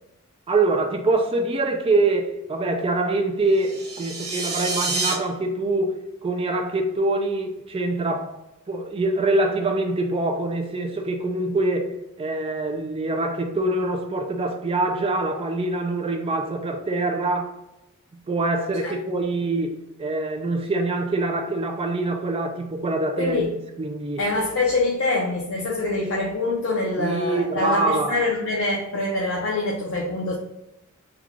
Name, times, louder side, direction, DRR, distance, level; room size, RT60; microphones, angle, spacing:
voice 1, 0.5-8.4 8.7-17.5 18.3-24.2 27.0-28.3, right 2 dB, 25° right, 0.3 m, -24 dB
sound 1, 3.5-5.1, right 3 dB, 50° right, 1.3 m, -28 dB
voice 2, 23.2-23.5 24.2-30.3, left 2 dB, 65° left, 0.6 m, -25 dB
3.7 x 2.3 x 3.1 m
head